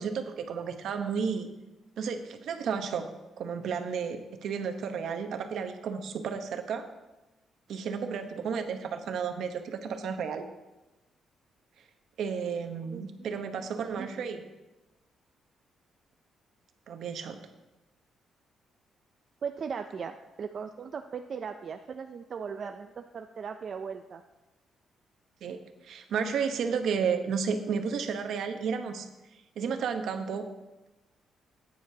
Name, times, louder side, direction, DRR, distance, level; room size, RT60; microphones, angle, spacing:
voice 1, 0.0-1.5 2.0-3.1 3.4-6.9 7.7-10.4 12.2-14.4 16.9-17.4 25.4-29.1 29.6-30.5, right 6 dB, 65° right, 6 dB, 0.9 m, -32 dB
voice 2, 12.9-14.3 19.4-24.2, right 6 dB, 40° right, 6 dB, 0.4 m, -39 dB
15.0 x 9.3 x 2.8 m, 1.1 s
cardioid pair, 155°, 0 cm